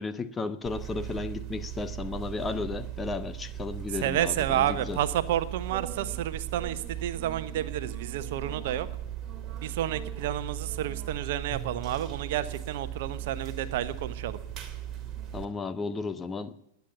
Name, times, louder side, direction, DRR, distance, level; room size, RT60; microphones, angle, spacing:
voice 1, 0.0-5.0 15.3-16.5, left 4 dB, 15° left, 11 dB, 1.0 m, -34 dB
sound 1, 0.6-15.4, right 11 dB, 25° right, 2.7 m, -38 dB
voice 2, 4.0-8.9 9.6-14.4, right 11 dB, 55° right, 13 dB, 1.0 m, -30 dB
20.5 x 9.5 x 7.1 m, 0.76 s
figure-of-eight pair, 90°, 0 cm